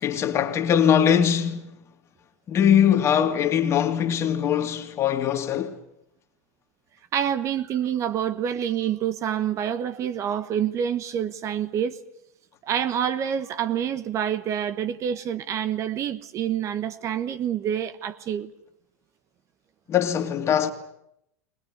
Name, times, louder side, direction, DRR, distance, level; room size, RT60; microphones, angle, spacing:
voice 1, 0.0-1.7 2.5-5.8 19.9-20.7, left 9 dB, 35° left, 2.6 m, -21 dB
voice 2, 7.1-12.0 12.6-18.5, right 9 dB, 35° right, 1.2 m, -27 dB
21.5 x 20.5 x 9.5 m
figure-of-eight pair, 85°, 9 cm